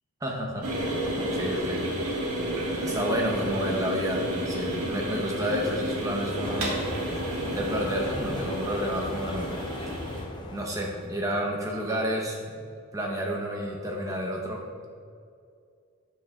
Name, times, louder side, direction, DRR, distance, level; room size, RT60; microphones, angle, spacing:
voice 1, 0.2-1.8 2.8-6.8 7.5-9.6 10.5-12.6 12.9-14.9, equal, 15° right, -1 dB, 0.8 m, -30 dB
sound 1, 0.6-10.2, right 1 dB, 85° right, 1.7 m, -31 dB
sound 2, 6.4-11.3, left 1 dB, 20° left, 0.4 m, -37 dB
9.2 x 6.6 x 2.3 m, 2.3 s
head